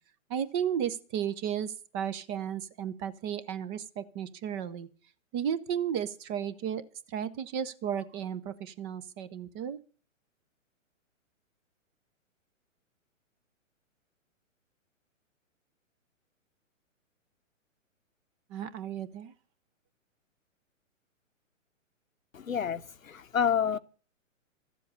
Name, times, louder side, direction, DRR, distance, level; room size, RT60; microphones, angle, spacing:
voice 1, 0.3-4.9 5.3-6.8 7.1-9.8 18.5-19.3, right 9 dB, 20° right, 0.6 m, -34 dB
voice 2, 22.3-23.8, left 7 dB, 80° left, 1.0 m, -29 dB
13.5 x 7.6 x 8.4 m
figure-of-eight pair, 120°, 40 cm